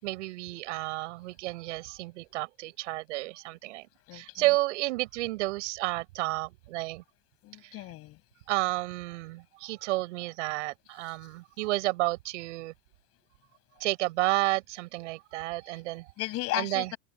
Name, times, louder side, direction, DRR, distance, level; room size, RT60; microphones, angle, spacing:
voice 1, 0.0-7.0 7.6-7.7 8.5-12.7 13.8-16.1 16.6-16.9, right 19 dB, 85° right, 7.0 m, -31 dB
voice 2, 4.1-4.4 7.4-8.2 11.1-11.2 15.7-15.8 16.2-17.0, left 17 dB, 40° left, 6.2 m, -35 dB
open air
supercardioid pair, 165°, 35 cm